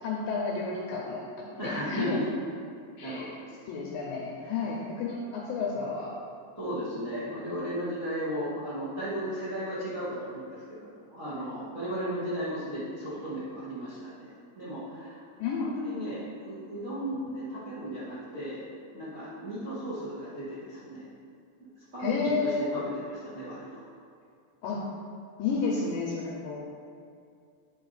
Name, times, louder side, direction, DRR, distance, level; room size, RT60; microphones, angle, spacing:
voice 1, 0.0-1.2 1.6-2.2 3.0-3.3 3.7-6.1 15.4-16.0 22.0-22.9 24.6-24.8 25.4-26.6, left 4 dB, 80° left, -3 dB, 2.1 m, -31 dB
voice 2, 1.4-2.2 3.0-3.3 4.4-4.5 6.6-15.2 15.6-18.6 18.9-21.1 21.9-23.7, equal, 55° right, -11 dB, 0.8 m, -35 dB
10.0 x 5.0 x 4.0 m, 2.4 s
omnidirectional pair, 4.8 m